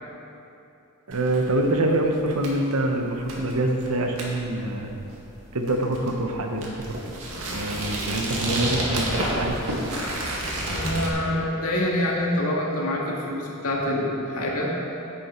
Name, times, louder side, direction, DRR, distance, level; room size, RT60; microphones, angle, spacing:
sound 1, 1.1-11.1, right 1 dB, 70° right, 1.9 m, -31 dB
voice 1, 1.1-4.9 5.5-6.8 7.5-9.6, right 1 dB, 85° right, 3 dB, 1.0 m, -25 dB
voice 2, 10.7-14.7, left 1 dB, 80° left, -3 dB, 1.9 m, -26 dB
9.9 x 8.7 x 4.5 m, 2.8 s
head